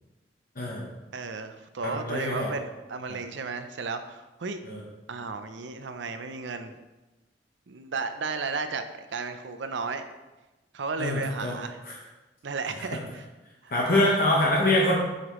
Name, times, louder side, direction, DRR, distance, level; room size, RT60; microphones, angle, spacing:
voice 1, 1.1-4.6 5.1-6.7 7.7-8.8 9.1-10.0 10.7-11.8 12.4-13.2 13.6-14.2, right 4 dB, 80° right, 9 dB, 0.6 m, -34 dB
voice 2, 1.8-2.5 3.1-3.2 4.6-4.8 11.0-11.6 11.8-11.9 13.7-14.9, left 1 dB, 50° left, -3 dB, 1.0 m, -24 dB
7.9 x 5.8 x 3.1 m, 1.1 s
head